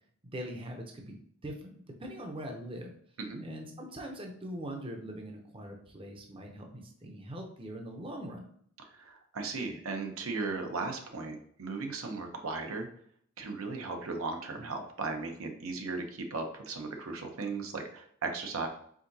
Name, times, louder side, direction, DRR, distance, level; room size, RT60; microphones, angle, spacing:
voice 1, 0.3-1.2 1.4-2.9 3.4-8.5 14.6-14.7, equal, 25° right, 2 dB, 0.6 m, -42 dB
voice 2, 8.9-12.9 13.4-18.7, right 3 dB, 85° right, 4 dB, 0.7 m, -36 dB
4.9 x 3.7 x 2.7 m, 0.62 s
head